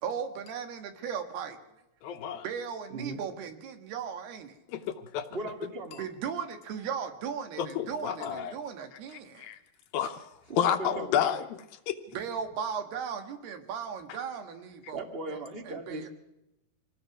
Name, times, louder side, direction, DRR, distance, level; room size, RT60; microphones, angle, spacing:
voice 1, 0.0-1.8 2.4-4.6 6.0-9.5 12.1-16.1, right 7 dB, 85° right, 6 dB, 3.8 m, -37 dB
voice 2, 2.0-2.4 4.7-5.3 7.6-8.6 9.4-9.6 9.9-12.0, left 9 dB, 75° left, 8 dB, 2.6 m, -30 dB
voice 3, 5.3-6.0 10.5-11.2 14.9-16.1, right 2 dB, 30° right, 4 dB, 1.1 m, -37 dB
25.5 x 18.5 x 6.1 m, 0.90 s
omnidirectional pair, 4.5 m